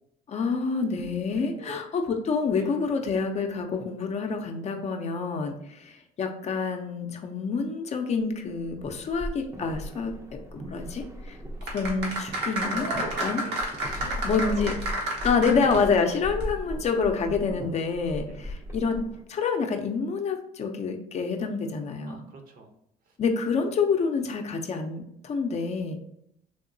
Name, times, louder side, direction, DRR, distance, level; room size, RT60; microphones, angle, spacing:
voice 1, 0.3-10.1 10.5-13.4 14.2-14.8 15.2-22.2 23.2-25.9, left 5 dB, 40° left, 4 dB, 0.5 m, -27 dB
voice 2, 1.3-1.8 2.5-2.7 13.1-14.8 15.6-15.8 18.2-18.4 22.1-22.7 23.0-23.2, right 3 dB, 55° right, 4 dB, 0.8 m, -46 dB
Firework background, 8.4-19.2, equal, 15° right, 0.5 m, -38 dB
sound 1, 11.6-16.1 16.4-16.5, right 1 dB, 85° right, 1.0 m, -30 dB
3.5 x 2.8 x 2.6 m, 0.75 s
cardioid pair, 110°, 17 cm